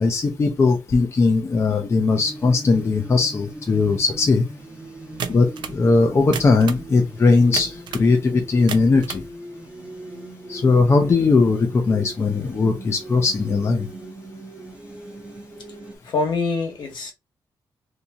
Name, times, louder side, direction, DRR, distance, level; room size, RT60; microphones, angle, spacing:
voice 1, 0.0-4.4 5.3-9.2 10.5-13.9, left 3 dB, 35° left, 0.5 m, -19 dB
sound 1, 2.1-16.0, right 1 dB, 15° right, 0.7 m, -39 dB
sound 2, 5.2-5.8 6.2-6.9 7.5-8.1 8.5-9.3, right 7 dB, 75° right, 0.5 m, -32 dB
voice 2, 16.0-17.1, left 3 dB, 70° left, 1.1 m, -24 dB
2.7 x 2.7 x 2.3 m
wide cardioid pair, 130°, 8 cm